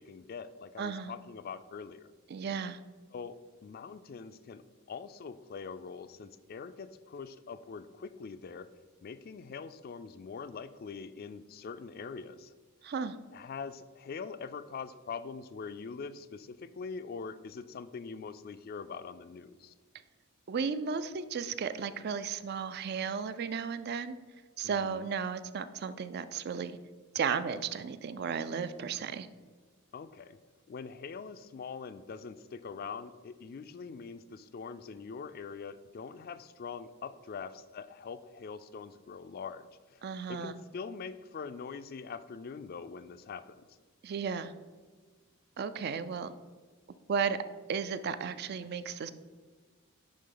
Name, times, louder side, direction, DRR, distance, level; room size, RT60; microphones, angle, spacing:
voice 1, 0.0-2.1 3.1-4.6 4.9-8.7 9.0-12.5 13.3-19.7 24.6-25.1 29.9-30.4 30.7-40.0 40.3-43.8, left 5 dB, 45° left, 13 dB, 0.3 m, -43 dB
voice 2, 0.8-1.1 2.3-2.8 12.8-13.2 20.5-24.2 24.6-26.8 27.1-29.3 40.0-40.5 44.0-44.5 45.6-46.3 47.1-47.4 47.7-49.1, right 6 dB, 45° right, 13 dB, 0.3 m, -34 dB
10.5 x 3.6 x 3.9 m, 1.4 s
head